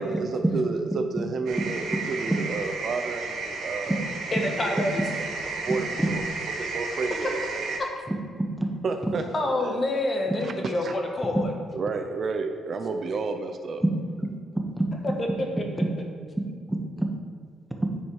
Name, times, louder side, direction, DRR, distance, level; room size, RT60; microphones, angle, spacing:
voice 1, 0.0-4.0 4.3-4.8 5.2-5.3 5.5-6.2 6.6-7.8 8.8-9.2 9.6-9.8 10.4-10.9 11.7-13.8, right 4 dB, 50° right, 6 dB, 0.7 m, -31 dB
sound 1, 1.5-7.8, right 4 dB, 75° right, 1.4 m, -33 dB
voice 2, 4.3-5.0 7.8-7.9 9.3-11.5 15.2-15.6, left 1 dB, 35° left, 2 dB, 1.4 m, -27 dB
voice 3, 8.1-8.7 10.3-10.4 11.3-11.4 14.2-14.3 14.5-14.9 15.8-15.9 16.7-17.1 17.8-17.9, right 1 dB, 5° right, 2 dB, 1.1 m, -27 dB
9.9 x 4.2 x 4.8 m, 2.1 s
cardioid pair, 90°, 0 cm